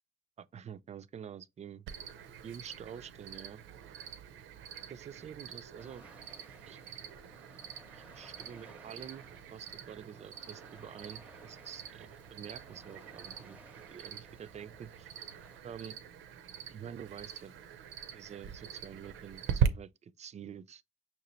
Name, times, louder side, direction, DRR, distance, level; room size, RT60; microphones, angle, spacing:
voice 1, 0.4-1.9 2.4-3.6 4.9-6.1 6.7-6.8 7.9-15.1 15.6-16.0 16.7-17.5 18.1-20.8, right 8 dB, 35° right, 0.4 m, -48 dB
Cricket, 1.9-19.7, right 8 dB, 80° right, 0.6 m, -41 dB
sound 1, 5.8-15.6, right 1 dB, 5° right, 0.7 m, -58 dB
5.8 x 2.9 x 3.0 m
cardioid pair, 90°, 20 cm